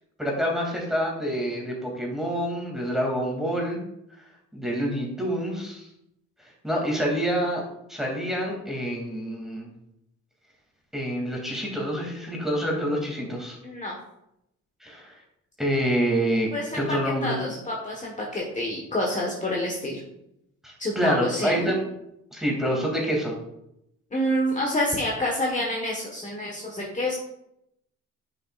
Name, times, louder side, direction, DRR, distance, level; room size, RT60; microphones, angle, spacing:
voice 1, 0.2-3.8 4.5-5.9 6.6-7.6 7.9-9.7 10.9-13.6 14.8-15.1 15.6-17.3 20.6-21.8 22.3-23.3, equal, ahead, -1 dB, 2.6 m, -27 dB
voice 2, 13.6-14.0 16.5-16.8 17.2-20.0 20.8-21.7 24.1-27.2, left 1 dB, 25° left, -2 dB, 1.4 m, -28 dB
10.0 x 5.8 x 2.5 m, 0.81 s
cardioid pair, 90°, 30 cm